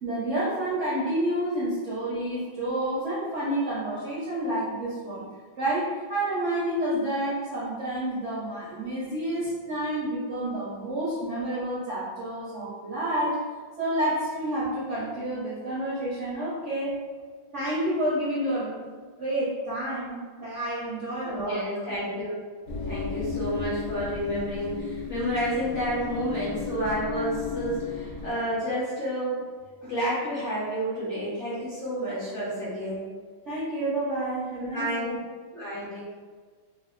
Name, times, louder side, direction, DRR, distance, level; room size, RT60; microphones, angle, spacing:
voice 1, 0.0-5.2 5.6-13.4 13.8-17.0 17.5-18.8 19.2-21.8 33.5-35.2, right 1 dB, 75° right, -9 dB, 0.6 m, -29 dB
voice 2, 21.2-22.4 22.9-29.4 29.8-33.0 34.6-35.1 35.5-36.1, equal, 60° left, -9 dB, 0.7 m, -30 dB
sound 1, 22.7-28.3, left 5 dB, 90° left, 1.4 m, -34 dB
3.4 x 2.1 x 2.3 m, 1.5 s
omnidirectional pair, 2.2 m